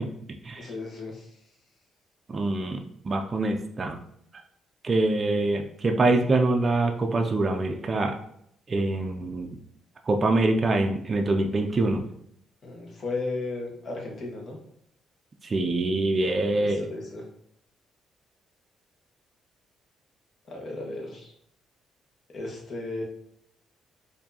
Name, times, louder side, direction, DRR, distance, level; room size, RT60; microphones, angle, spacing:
voice 1, 0.6-1.3 12.6-14.6 16.5-17.2 20.5-21.3 22.3-23.0, left 2 dB, 50° left, 0 dB, 1.1 m, -35 dB
voice 2, 2.3-4.0 4.8-8.2 8.7-9.6 10.1-12.0 15.4-16.9, right 2 dB, 35° right, 3 dB, 0.4 m, -25 dB
4.4 x 2.6 x 2.7 m, 0.71 s
cardioid pair, 90°, 0 cm